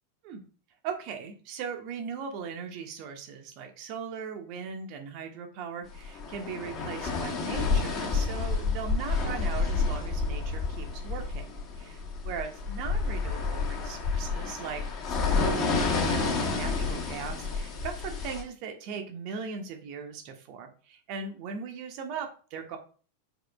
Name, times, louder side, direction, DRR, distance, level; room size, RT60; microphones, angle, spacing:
voice 1, 0.8-11.5 11.8-12.0 12.2-14.8 15.1-22.8, right 6 dB, 45° right, 5 dB, 1.3 m, -38 dB
sound 1, 5.9-18.4, left 4 dB, 30° left, 1.7 m, -29 dB
7.3 x 5.3 x 2.4 m, 0.40 s
figure-of-eight pair, 90°, 0 cm